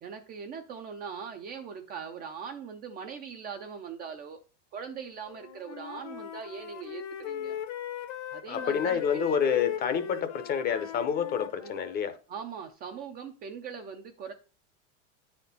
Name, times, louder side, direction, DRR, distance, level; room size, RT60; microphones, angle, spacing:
voice 1, 0.0-4.4 4.7-7.6 8.3-9.4 11.6-11.7 12.3-14.3, right 6 dB, 25° right, 0.4 m, -41 dB
Wind instrument woodwind instrument, 5.2-12.0, left 10 dB, 70° left, 1.0 m, -39 dB
voice 2, 8.5-12.1, left 7 dB, 25° left, 0.6 m, -28 dB
9.0 x 4.3 x 4.0 m
supercardioid pair, 145°, 39 cm